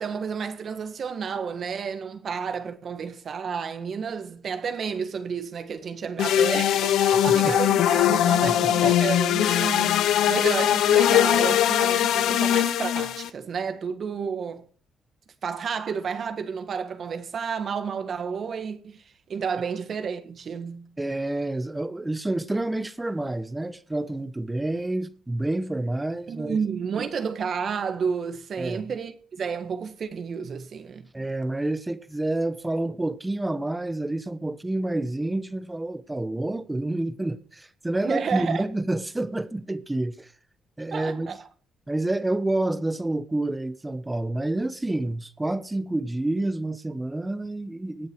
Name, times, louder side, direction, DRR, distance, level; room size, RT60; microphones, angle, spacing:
voice 1, 0.0-14.7 15.4-19.0 19.3-20.9 26.3-31.1 38.0-38.6 40.9-41.5, right 6 dB, 55° right, 1.6 m, -31 dB
sound 1, 6.2-13.3, left 11 dB, 80° left, 0.8 m, -21 dB
voice 2, 7.3-7.6 8.4-8.7 21.0-26.6 28.6-28.8 31.1-40.3 40.8-41.4 41.9-48.1, right 2 dB, 15° right, 1.1 m, -28 dB
17.0 x 9.4 x 4.6 m
cardioid pair, 90°, 0 cm